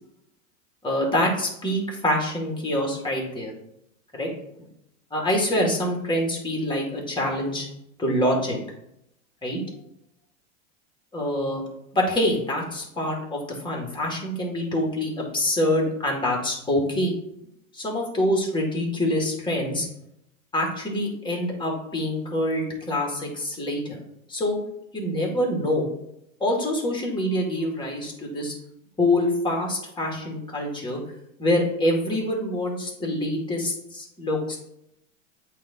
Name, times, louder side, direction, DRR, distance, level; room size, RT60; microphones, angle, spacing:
voice 1, 0.8-3.5 4.1-4.3 5.1-7.7 8.0-8.6 9.4-9.6 11.1-11.6 11.9-17.1 17.7-19.9 20.5-24.0 24.3-24.6 24.9-25.9 26.4-28.5 29.0-31.0 31.4-34.6, left 1 dB, 10° left, 0 dB, 1.9 m, -25 dB
8.3 x 2.8 x 4.2 m, 0.77 s
hypercardioid pair, 115°, 40 cm